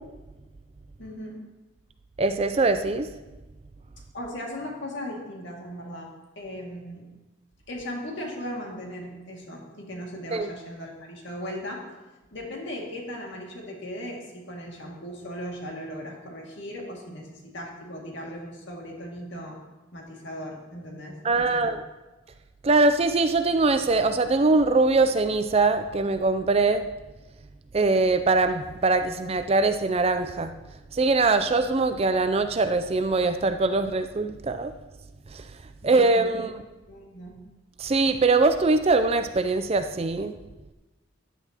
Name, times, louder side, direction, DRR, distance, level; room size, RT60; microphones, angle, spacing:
voice 1, 1.0-1.4 4.1-6.1 6.4-7.1 7.7-11.8 12.3-19.6 19.9-21.7 35.8-36.5 36.9-37.4, equal, 55° left, -1 dB, 2.2 m, -37 dB
voice 2, 2.2-3.1 10.3-10.5 21.2-21.8 22.6-26.8 27.7-30.5 30.9-34.7 35.8-36.5 37.8-40.3, right 3 dB, 30° right, 9 dB, 0.4 m, -22 dB
14.5 x 10.0 x 2.9 m, 1.1 s
head